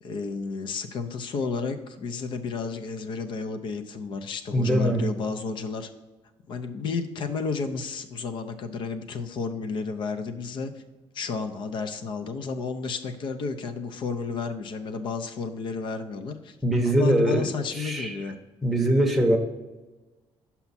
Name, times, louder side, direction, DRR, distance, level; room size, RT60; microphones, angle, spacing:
voice 1, 0.0-5.9 6.5-10.7 11.1-16.6 16.8-18.4, left 4 dB, 55° left, 9 dB, 0.6 m, -32 dB
voice 2, 4.5-5.0 16.6-17.5 17.7-18.2 18.6-19.4, right 1 dB, ahead, 0 dB, 0.8 m, -22 dB
5.8 x 5.7 x 4.1 m, 1.1 s
cardioid pair, 165°, 10 cm